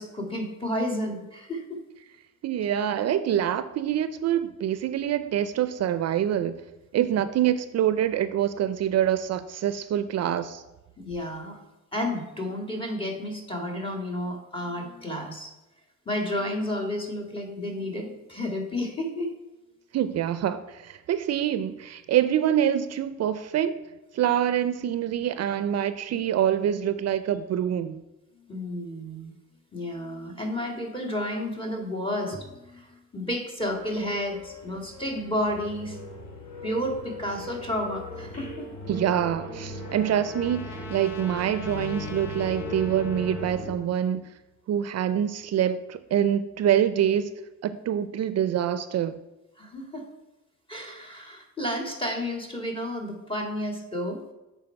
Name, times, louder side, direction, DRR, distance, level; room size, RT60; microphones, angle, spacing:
voice 1, 0.0-1.8 11.0-11.6 11.9-15.5 16.1-19.3 28.3-29.3 29.7-36.0 36.6-38.7 49.6-50.1 50.7-54.2, left 1 dB, 15° left, 1.9 m, -31 dB
voice 2, 2.4-6.6 6.9-10.6 19.9-23.8 24.1-28.0 38.9-44.3 44.7-47.3 47.6-49.2, right 10 dB, 60° right, 0.5 m, -25 dB
sound 1, 33.6-43.7, left 1 dB, 55° left, 2.4 m, -38 dB
Trumpet, 39.0-43.7, left 5 dB, 85° left, 0.9 m, -45 dB
7.7 x 4.7 x 5.6 m
cardioid pair, 90°, 30 cm